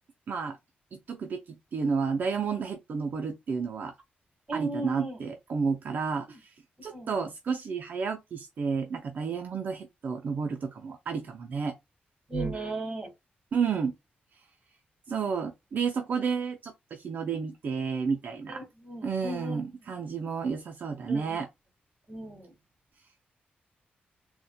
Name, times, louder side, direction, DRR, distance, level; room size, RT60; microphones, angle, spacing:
voice 1, 0.3-0.6 0.9-3.9 4.5-6.5 6.8-11.8 13.5-13.9 15.1-18.6 19.0-21.5, right 5 dB, 55° right, 0.4 m, -31 dB
voice 2, 4.5-5.2 6.9-7.1 12.3-13.1 18.5-19.6 21.1-21.4 22.1-22.5, right 2 dB, 25° right, 1.3 m, -35 dB
4.0 x 2.2 x 2.2 m
wide cardioid pair, 125°, 4 cm